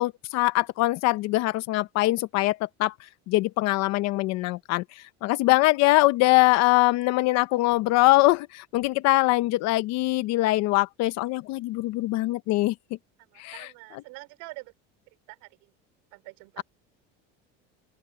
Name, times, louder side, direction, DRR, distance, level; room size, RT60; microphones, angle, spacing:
voice 1, 0.0-2.9 3.3-12.7 13.4-14.0, left 19 dB, 60° left, 0.9 m, -23 dB
voice 2, 13.3-14.7 15.3-15.5 16.1-16.6, right 23 dB, 75° right, 4.0 m, -44 dB
open air
cardioid pair, 140°, 30 cm